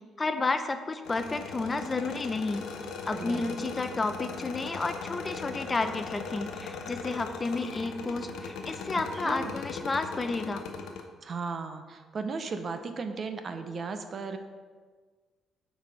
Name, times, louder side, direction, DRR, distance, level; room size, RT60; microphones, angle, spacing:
voice 1, 0.2-2.7 3.1-10.6, left 3 dB, 30° left, 8 dB, 0.5 m, -31 dB
sound 1, 1.0-11.0, left 5 dB, 90° left, 0.7 m, -39 dB
voice 2, 3.0-3.6 9.1-9.5 11.2-14.4, right 4 dB, 50° right, 8 dB, 0.6 m, -36 dB
8.0 x 4.1 x 4.9 m, 1.5 s
cardioid pair, 90°, 0 cm